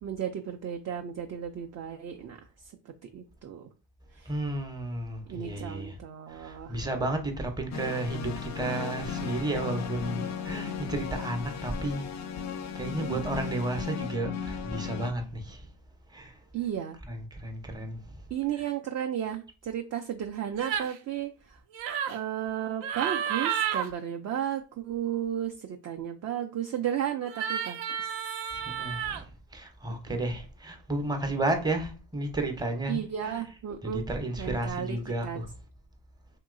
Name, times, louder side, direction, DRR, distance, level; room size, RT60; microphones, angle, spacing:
voice 1, 0.0-3.7 4.1-4.3 5.3-6.8 13.0-13.3 16.5-17.0 18.3-21.6 22.1-28.4 30.1-30.2 32.9-34.0 34.4-35.0 35.2-35.4, right 10 dB, 35° right, 0.4 m, -34 dB
voice 2, 4.3-6.0 6.3-12.4 12.7-15.7 16.1-16.4 17.0-18.2 18.5-18.7 28.5-33.5 33.8-35.5, right 2 dB, 10° right, 0.7 m, -33 dB
sound 1, 7.7-15.1, left 7 dB, 35° left, 0.4 m, -36 dB
sound 2, 20.6-21.0 21.7-22.2 22.8-23.9 27.3-29.2, right 9 dB, 70° right, 0.7 m, -31 dB
2.9 x 2.7 x 2.5 m
supercardioid pair, 75°, 49 cm